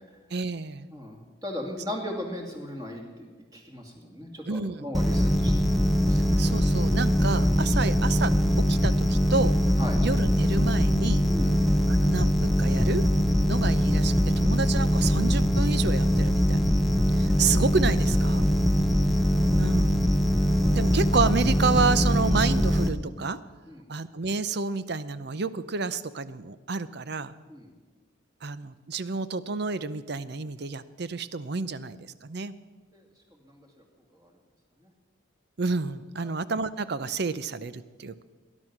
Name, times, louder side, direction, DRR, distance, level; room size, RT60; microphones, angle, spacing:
voice 1, 0.3-0.9 4.5-4.9 6.4-8.3 8.7-9.6 10.0-11.3 11.9-13.1 13.5-16.6 17.2-18.4 19.6-20.1 20.7-23.4 23.9-27.3 28.4-32.5 35.6-38.2, right 4 dB, 55° right, 14 dB, 0.6 m, -30 dB
voice 2, 0.9-5.6 6.0-6.6 9.8-10.0 11.3-11.5 18.8-19.5 23.7-23.9 27.5-27.7 32.9-33.0 33.4-33.6 34.1-34.3 34.8-34.9 36.2-36.3, left 1 dB, 20° right, 1 dB, 2.3 m, -38 dB
sound 1, 4.9-22.9, equal, ahead, 0.8 m, -22 dB
19.5 x 11.0 x 6.0 m, 1.4 s
head